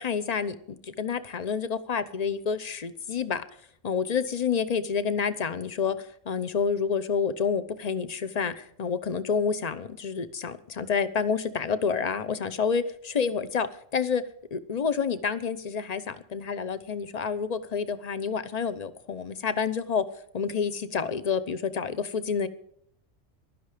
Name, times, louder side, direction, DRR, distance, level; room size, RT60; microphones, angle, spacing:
voice 1, 0.0-3.4 3.8-6.0 6.3-12.8 13.1-14.2 14.5-20.0 20.3-22.5, left 6 dB, 35° left, 13 dB, 0.9 m, -28 dB
15.5 x 12.5 x 5.0 m, 0.67 s
omnidirectional pair, 1.3 m